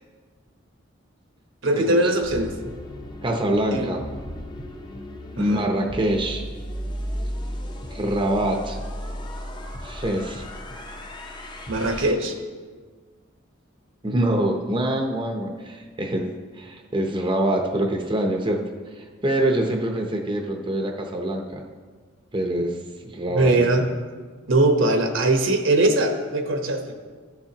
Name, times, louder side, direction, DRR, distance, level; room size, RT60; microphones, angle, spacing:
voice 1, 1.6-2.5 3.7-3.9 5.4-5.7 11.7-12.4 23.3-23.9 24.5-26.8, right 2 dB, 70° right, 4 dB, 1.0 m, -21 dB
sound 1, 2.2-12.1, equal, 20° left, 0.7 m, -35 dB
voice 2, 3.2-4.0 5.4-6.4 7.9-8.8 9.8-10.4 14.0-18.6 19.0-21.6 22.3-22.8 23.0-23.6, right 1 dB, 25° right, 2 dB, 0.7 m, -25 dB
14.0 x 7.1 x 2.9 m, 1.5 s
head